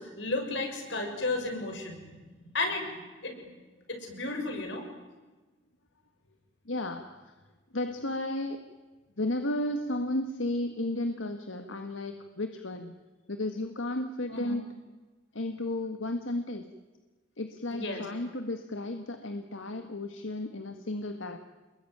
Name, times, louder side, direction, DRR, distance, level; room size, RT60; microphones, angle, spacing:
voice 1, 0.0-2.1 2.5-3.5 4.0-4.8 14.3-14.6 17.7-18.0, left 2 dB, 70° left, 4 dB, 6.6 m, -33 dB
voice 2, 6.7-7.4 7.7-8.6 9.2-12.9 13.3-14.6 15.3-16.7 17.4-21.4, left 1 dB, 85° left, 7 dB, 1.8 m, -33 dB
28.5 x 21.5 x 9.3 m, 1.3 s
head